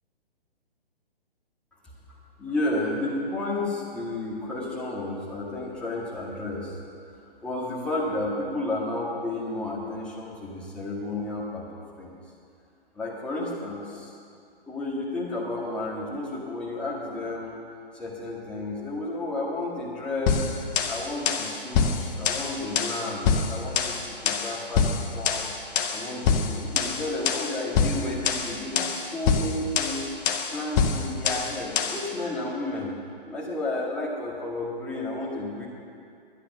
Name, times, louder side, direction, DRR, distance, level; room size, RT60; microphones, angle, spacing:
voice 1, 2.1-6.8 7.4-12.1 12.9-14.1 14.7-17.5 17.9-20.5 20.9-24.9 25.1-25.5 25.9-30.0 30.5-32.9 33.2-35.7, left 2 dB, 5° left, -7 dB, 2.0 m, -32 dB
sound 1, 20.3-32.1, left 6 dB, 20° left, 0.7 m, -26 dB
11.5 x 11.0 x 6.1 m, 2.4 s
figure-of-eight pair, 135°, 30 cm